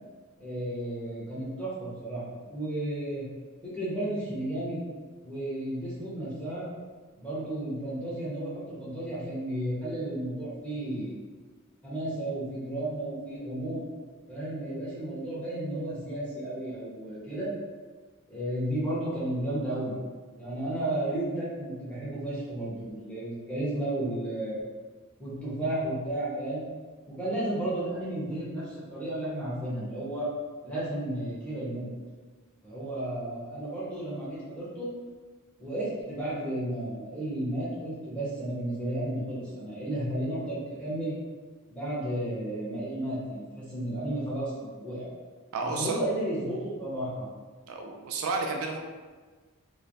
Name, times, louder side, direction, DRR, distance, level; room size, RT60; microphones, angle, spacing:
voice 1, 0.4-3.3 3.6-4.8 5.2-6.7 7.2-11.2 11.8-13.8 14.3-17.5 18.3-19.9 20.4-24.6 25.2-26.6 27.1-30.3 30.6-31.9 32.6-34.9 35.6-41.1 41.7-45.1 45.8-47.3, right 1 dB, 5° left, -10 dB, 1.0 m, -33 dB
voice 2, 45.5-46.0 47.7-48.8, right 3 dB, 70° right, 2 dB, 0.3 m, -31 dB
3.1 x 2.1 x 2.6 m, 1.4 s
head